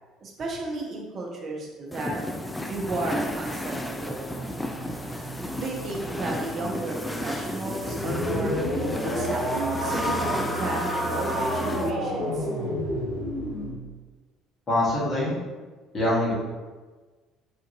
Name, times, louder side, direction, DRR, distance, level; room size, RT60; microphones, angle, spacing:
voice 1, 0.2-2.2 2.7-4.5 5.5-8.6 9.1-12.5, right 2 dB, 45° right, -1 dB, 0.7 m, -33 dB
sound 1, 1.9-11.9, left 1 dB, 10° left, 0.3 m, -33 dB
sound 2, 4.3-11.9, right 3 dB, 90° right, 0.8 m, -41 dB
sound 3, 7.8-13.7, equal, 90° left, 0.9 m, -29 dB
voice 2, 14.7-15.3 15.9-16.3, left 1 dB, 35° left, -7 dB, 1.4 m, -24 dB
3.5 x 2.5 x 2.7 m, 1.3 s
figure-of-eight pair, 55°, 0 cm